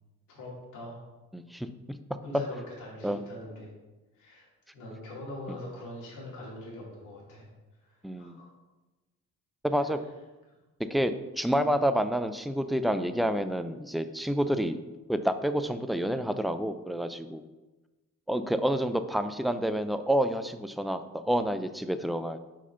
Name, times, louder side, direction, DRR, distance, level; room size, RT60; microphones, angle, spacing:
voice 1, 0.3-1.0 2.2-3.7 4.2-4.5 4.7-7.5 7.8-8.5 9.7-9.9 10.5-10.6, left 1 dB, 85° left, -4 dB, 2.2 m, -43 dB
voice 2, 1.3-2.0 3.0-3.2 5.5-5.6 8.0-8.4 9.6-10.0 10.9-14.8 15.1-17.4 18.3-22.4, equal, ahead, 10 dB, 0.3 m, -29 dB
4.8 x 4.4 x 5.5 m, 1.1 s
cardioid pair, 90°, 30 cm